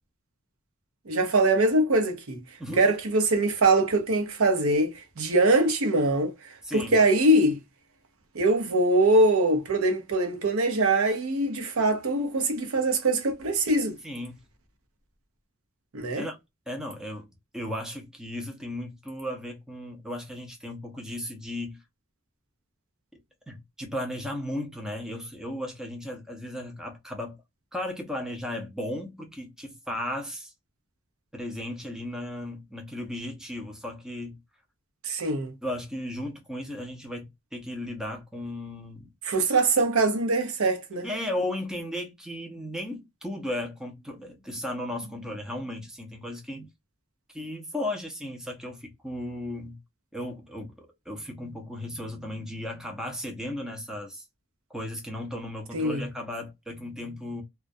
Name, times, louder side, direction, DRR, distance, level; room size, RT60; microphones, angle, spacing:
voice 1, 1.1-2.4 2.8-6.3 6.7-7.6 8.3-14.0 15.9-16.2 35.0-35.5 39.2-41.1 55.7-56.0, right 2 dB, 85° right, 0.7 m, -23 dB
voice 2, 6.6-7.0 14.0-14.4 16.2-16.4 16.7-17.3 17.5-21.8 23.5-27.4 27.7-30.5 31.3-34.4 35.6-37.3 37.5-39.1 41.0-46.7 47.3-49.8 50.1-54.2 54.7-57.4, left 1 dB, 5° right, 0.5 m, -35 dB
2.2 x 2.2 x 2.5 m
head